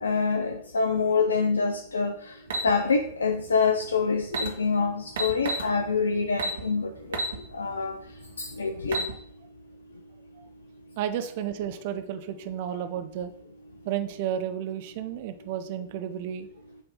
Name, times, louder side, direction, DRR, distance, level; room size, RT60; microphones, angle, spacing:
voice 1, 0.0-2.3 2.6-7.2 7.5-8.0 8.4-9.1, left 4 dB, 80° left, 5 dB, 0.5 m, -26 dB
sound 1, 2.5-2.7 3.9-4.0 4.3-4.5 5.2-5.7 6.4-6.6 7.1-7.4 7.8-7.9 8.7-9.1, right 3 dB, 65° right, 1.4 m, -29 dB
voice 2, 11.0-13.3 13.8-16.5, right 10 dB, 50° right, 9 dB, 0.6 m, -32 dB
7.0 x 3.4 x 5.4 m, 0.66 s
figure-of-eight pair, 100°, 0 cm